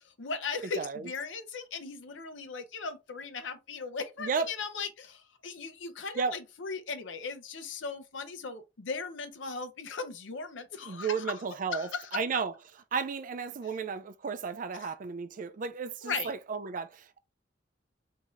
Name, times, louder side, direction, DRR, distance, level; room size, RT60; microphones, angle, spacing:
voice 1, 0.0-11.1 11.7-12.1 14.7-14.9 16.0-16.3, left 5 dB, 90° left, 0.7 m, -38 dB
voice 2, 0.8-1.1 4.2-4.5 6.1-6.4 10.9-12.5 12.9-17.2, right 5 dB, 45° right, 0.4 m, -33 dB
3.1 x 2.7 x 3.6 m
head